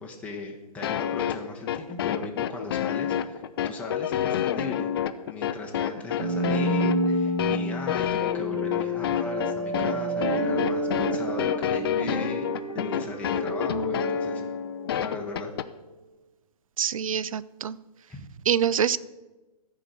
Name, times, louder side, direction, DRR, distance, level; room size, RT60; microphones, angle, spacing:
voice 1, 0.0-4.9 5.2-12.5 12.7-14.4 14.9-15.5 18.1-18.3, left 3 dB, 5° left, -1 dB, 1.0 m, -38 dB
sound 1, 0.8-15.7, left 10 dB, 40° left, 0.4 m, -28 dB
sound 2, 6.2-15.1, equal, 25° right, 2.1 m, -29 dB
voice 2, 16.8-17.8 18.5-19.0, right 8 dB, 60° right, 18 dB, 0.4 m, -25 dB
13.5 x 4.7 x 6.5 m, 1.1 s
figure-of-eight pair, 120°, 20 cm